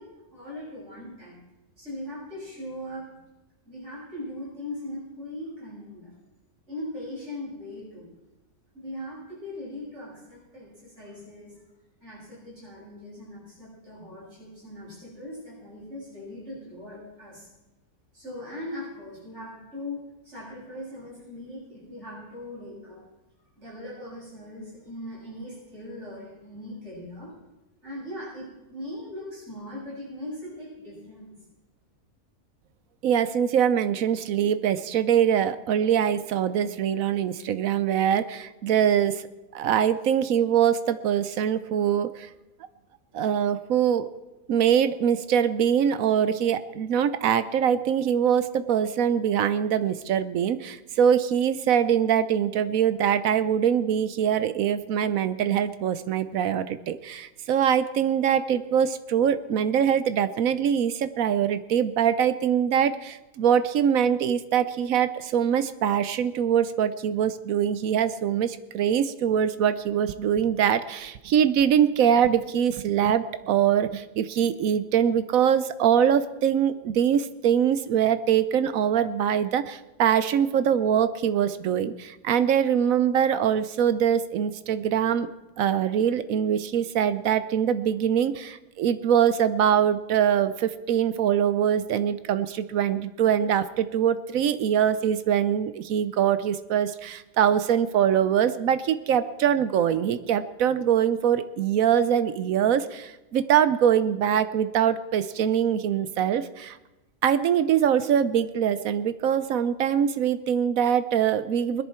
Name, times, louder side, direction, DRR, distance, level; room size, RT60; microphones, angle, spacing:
voice 1, 0.0-1.4 1.8-3.2 3.6-6.1 6.7-8.1 8.7-11.6 12.0-17.5 18.1-23.0 23.6-27.3 27.8-31.4, left 1 dB, 50° right, -6 dB, 7.3 m, -39 dB
voice 2, 33.0-39.3 39.5-42.3 43.1-44.1 44.5-85.3 85.6-106.8 107.2-111.8, right 9 dB, 70° right, 13 dB, 1.0 m, -23 dB
20.5 x 10.5 x 4.4 m, 1.0 s
omnidirectional pair, 1.6 m